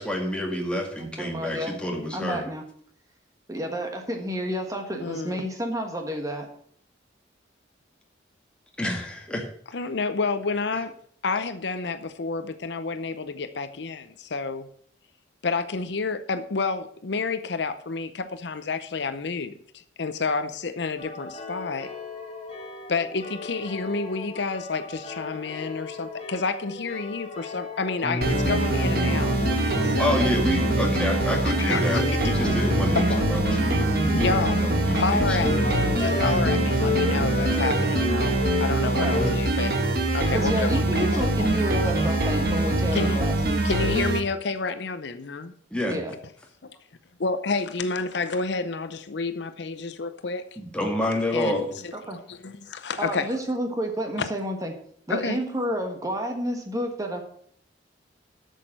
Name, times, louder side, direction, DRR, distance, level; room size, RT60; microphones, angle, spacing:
voice 1, 0.0-2.4 8.8-9.4 30.0-34.3 34.6-35.5 38.9-39.4 45.7-46.0 50.6-51.7, left 1 dB, 5° left, 0 dB, 2.0 m, -28 dB
voice 2, 1.0-1.7 2.1-2.6 3.5-6.5 38.8-39.2 40.3-43.9 45.9-46.1 51.9-52.2 53.0-54.7 55.1-57.2, equal, 20° right, 3 dB, 1.5 m, -30 dB
voice 3, 5.0-5.5 9.7-10.9 11.2-14.7 15.4-21.9 22.9-30.2 31.4-32.4 32.9-33.8 34.1-38.3 38.6-39.8 40.1-41.5 42.0-42.1 42.9-43.3 43.6-45.5 46.6-46.7 47.2-50.4 51.3-53.3 54.2-54.3 55.1-55.4, left 4 dB, 65° left, 10 dB, 0.6 m, -30 dB
sound 1, 21.0-39.3, left 2 dB, 35° left, 1.7 m, -31 dB
sound 2, 28.2-44.2, right 2 dB, 55° right, 1.5 m, -24 dB
8.2 x 6.5 x 7.7 m, 0.62 s
head